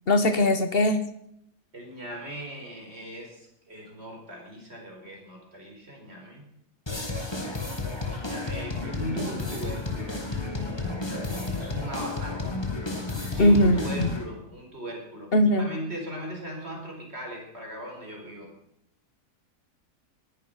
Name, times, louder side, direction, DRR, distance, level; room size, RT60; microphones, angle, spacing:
voice 1, 0.1-1.0 13.4-14.1 15.3-15.7, left 1 dB, 40° left, 11 dB, 1.2 m, -20 dB
voice 2, 1.7-6.4 8.1-12.6 12.9-18.5, equal, 40° right, 0 dB, 5.0 m, -39 dB
sound 1, 6.9-14.2, left 3 dB, 15° left, 2.2 m, -32 dB
19.0 x 11.5 x 5.6 m, 0.76 s
omnidirectional pair, 1.8 m